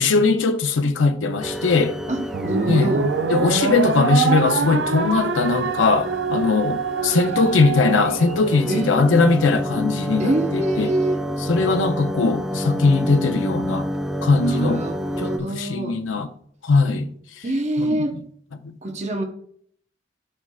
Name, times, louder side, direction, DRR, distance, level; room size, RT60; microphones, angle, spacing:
voice 1, 0.0-2.0 2.7-2.9 3.3-10.9 11.4-13.9 14.2-14.8 15.2-16.3 16.6-17.1 17.4-17.5 17.8-18.1 18.6-18.7, left 3 dB, 85° left, 0.6 m, -20 dB
sound 1, 1.4-15.4, equal, 5° right, 0.4 m, -29 dB
voice 2, 2.1-3.1 7.2-8.0 8.7-8.9 10.2-11.2 14.4-16.0 17.4-18.2 18.8-19.2, right 1 dB, 35° right, 0.9 m, -25 dB
sound 2, 2.3-8.9, right 5 dB, 70° right, 0.5 m, -25 dB
12.5 x 4.4 x 2.4 m
head